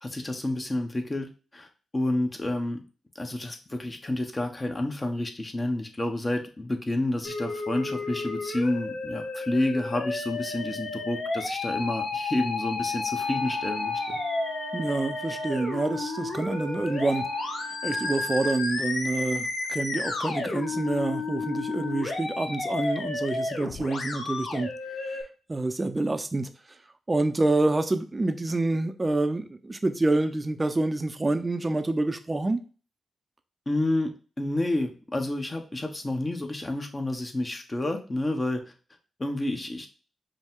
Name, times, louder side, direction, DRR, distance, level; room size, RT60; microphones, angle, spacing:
voice 1, 0.0-1.7 1.9-2.8 3.1-14.2 33.7-38.7 39.2-39.9, left 1 dB, 30° left, 1.1 m, -29 dB
Musical instrument, 7.2-25.2, left 3 dB, 70° left, 1.0 m, -32 dB
sound 1, 13.1-18.6, right 7 dB, 85° right, 0.5 m, -41 dB
voice 2, 14.7-17.2 17.8-24.7 25.5-26.5 27.1-32.6, right 2 dB, 30° right, 0.7 m, -27 dB
5.4 x 2.4 x 3.7 m
supercardioid pair, 45°, 0 cm